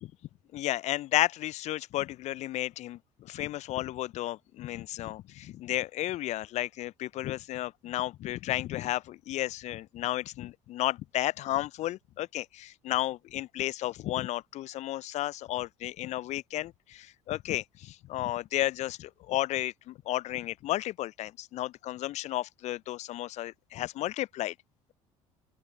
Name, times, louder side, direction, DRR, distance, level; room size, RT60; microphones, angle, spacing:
voice 1, 0.5-24.5, left 15 dB, 45° left, 0.4 m, -33 dB
open air
figure-of-eight pair, 60°, 17 cm